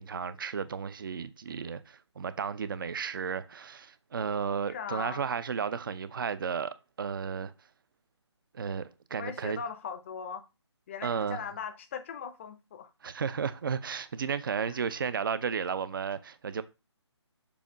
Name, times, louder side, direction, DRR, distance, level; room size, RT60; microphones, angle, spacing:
voice 1, 0.0-7.5 8.5-9.6 11.0-11.4 13.0-16.6, right 6 dB, 50° right, 0.6 m, -33 dB
voice 2, 4.7-5.3 9.2-10.4 10.9-12.9 14.7-14.8, left 7 dB, 25° left, 0.6 m, -39 dB
7.0 x 2.7 x 5.0 m
figure-of-eight pair, 155°, 15 cm